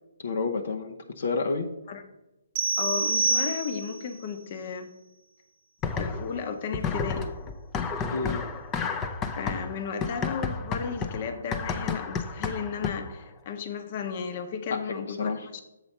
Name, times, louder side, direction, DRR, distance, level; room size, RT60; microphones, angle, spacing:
voice 1, 0.2-1.7 8.1-8.5 14.7-15.5, left 4 dB, 65° left, 4 dB, 0.8 m, -30 dB
sound 1, 2.6-4.1, right 3 dB, 45° right, 0.8 m, -26 dB
voice 2, 2.8-4.9 5.9-7.3 9.4-15.6, left 6 dB, 40° left, 7 dB, 0.9 m, -34 dB
sound 2, 5.8-6.4 6.7-13.2, left 5 dB, 20° left, 0.6 m, -31 dB
7.4 x 4.0 x 6.6 m, 0.96 s
hypercardioid pair, 145°, 0 cm